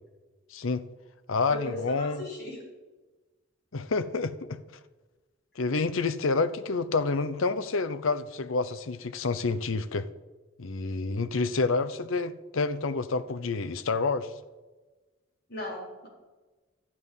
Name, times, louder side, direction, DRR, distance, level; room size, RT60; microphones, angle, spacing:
voice 1, 0.5-0.8 1.3-2.2 3.7-4.6 5.6-10.1 10.6-14.3, left 4 dB, 85° left, 0.7 m, -28 dB
voice 2, 1.5-2.6 15.5-16.1, left 1 dB, 50° left, 4.3 m, -37 dB
12.0 x 9.7 x 5.4 m
head